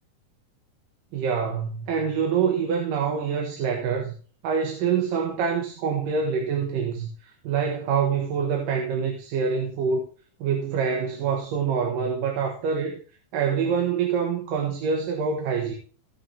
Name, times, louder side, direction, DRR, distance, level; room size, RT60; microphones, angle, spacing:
voice 1, 1.1-4.1 4.4-10.1 10.4-13.0 13.3-15.7, right 6 dB, 85° right, 3.1 m, -26 dB
17.5 x 6.5 x 3.4 m
omnidirectional pair, 3.8 m